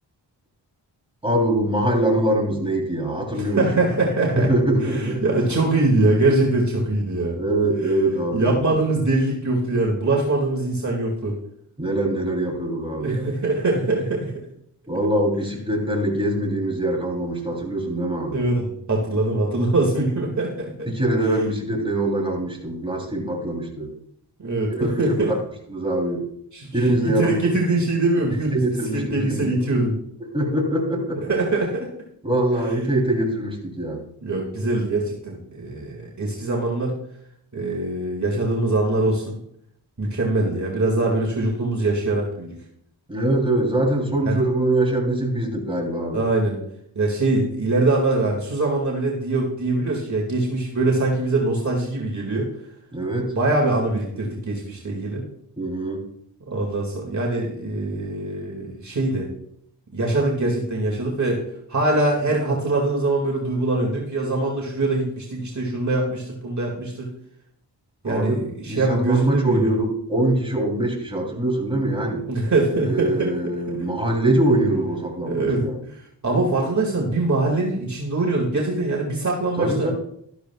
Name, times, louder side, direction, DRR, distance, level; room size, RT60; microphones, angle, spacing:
voice 1, 1.2-3.6 4.3-5.2 7.4-8.7 11.8-13.3 14.9-18.4 20.8-23.9 24.7-25.3 25.7-26.3 26.7-27.4 28.5-29.7 30.3-31.2 32.2-34.0 43.1-46.2 52.9-53.3 55.6-56.1 68.0-72.2 72.8-75.8 79.6-79.9, right 1 dB, 10° right, 0 dB, 3.3 m, -23 dB
voice 2, 3.4-4.5 4.8-7.4 8.3-11.4 13.0-14.3 18.3-20.9 24.4-25.3 26.5-29.9 31.3-31.9 34.2-36.9 37.5-39.4 40.0-42.6 44.2-44.4 46.1-46.6 47.0-52.5 53.3-55.2 56.5-59.3 59.9-61.4 61.7-67.1 68.0-69.7 72.3-73.4 75.2-79.9, right 2 dB, 40° right, -2 dB, 2.2 m, -23 dB
12.5 x 11.5 x 2.4 m, 0.71 s
cardioid pair, 60°, 43 cm